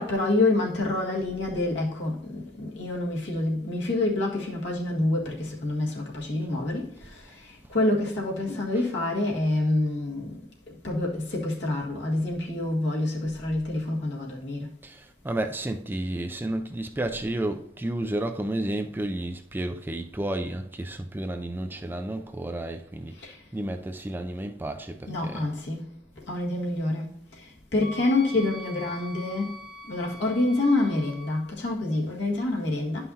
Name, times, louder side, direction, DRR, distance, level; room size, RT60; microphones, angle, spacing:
voice 1, 0.0-7.4 7.7-10.4 10.7-14.7 23.2-23.4 25.1-25.8 26.2-27.1 27.7-29.5 29.9-33.1, left 2 dB, 75° left, 1.7 m, -27 dB
voice 2, 14.8-23.1 23.5-25.5, right 1 dB, 10° right, 0.3 m, -31 dB
Wind instrument woodwind instrument, 27.8-31.4, left 1 dB, 45° left, 1.6 m, -42 dB
11.0 x 5.6 x 2.7 m
head